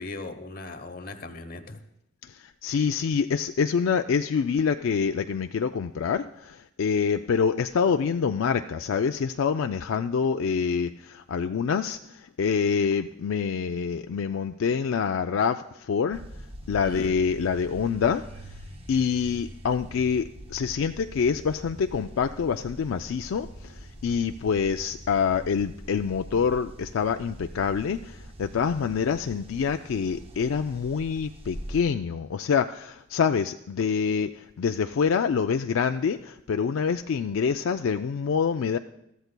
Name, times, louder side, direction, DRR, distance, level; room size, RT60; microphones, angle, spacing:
voice 1, 0.0-1.8 16.8-17.1, left 3 dB, 45° left, 8 dB, 0.9 m, -38 dB
voice 2, 2.2-16.2 16.7-18.2 18.9-38.8, left 6 dB, 70° left, 7 dB, 0.4 m, -26 dB
sound 1, 16.1-31.8, right 1 dB, 25° right, 0.7 m, -43 dB
21.0 x 13.5 x 2.2 m, 0.79 s
head